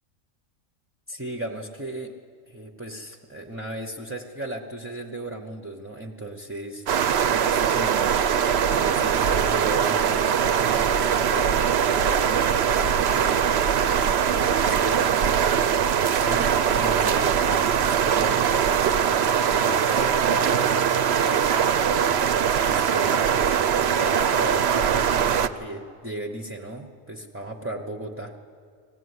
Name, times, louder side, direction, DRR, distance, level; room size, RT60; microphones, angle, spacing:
voice 1, 1.1-2.1 2.5-10.3 10.6-28.4, right 2 dB, 10° right, 1 dB, 0.8 m, -35 dB
sound 1, 6.9-25.5, right 8 dB, 60° right, 0.8 m, -22 dB
20.0 x 15.0 x 9.6 m, 2.2 s
omnidirectional pair, 1.4 m